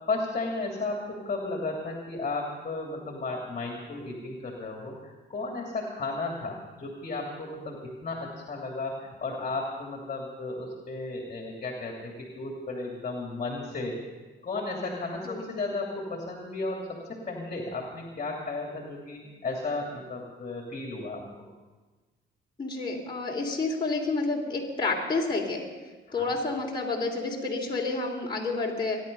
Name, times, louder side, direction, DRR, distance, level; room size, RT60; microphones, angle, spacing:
voice 1, 0.1-14.0 14.4-21.5 26.1-26.3, left 3 dB, 40° left, 0 dB, 2.9 m, -34 dB
voice 2, 22.6-25.6 26.1-29.0, left 3 dB, 25° left, -2 dB, 3.3 m, -29 dB
24.0 x 11.0 x 5.5 m, 1.3 s
cardioid pair, 90°, 20 cm